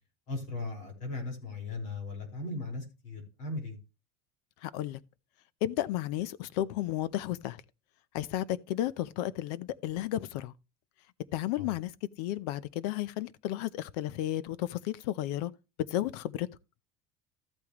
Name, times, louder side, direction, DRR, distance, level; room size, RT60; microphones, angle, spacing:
voice 1, 0.3-3.8 11.6-11.7, left 2 dB, 40° left, 4.9 m, -37 dB
voice 2, 4.6-5.0 5.6-7.6 8.1-10.5 11.3-11.9 12.2-15.5 15.9-16.5, left 13 dB, 85° left, 0.8 m, -33 dB
13.5 x 8.6 x 3.1 m
cardioid pair, 175°, 20 cm